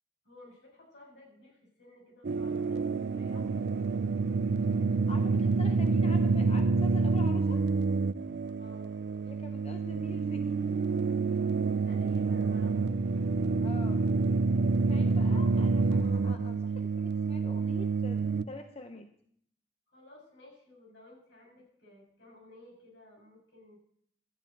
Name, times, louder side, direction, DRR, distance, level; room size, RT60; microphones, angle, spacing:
voice 1, 0.2-3.4 8.6-8.9 11.8-13.4 13.8-14.1 19.9-23.8, left 1 dB, 80° left, -2 dB, 6.7 m, -55 dB
sound 1, 2.2-18.4, right 4 dB, 65° right, 0.4 m, -28 dB
voice 2, 5.1-7.7 9.3-10.6 13.6-14.1 14.7-18.2 18.5-19.1, left 2 dB, 35° left, 6 dB, 0.8 m, -46 dB
12.5 x 6.3 x 9.0 m, 0.65 s
head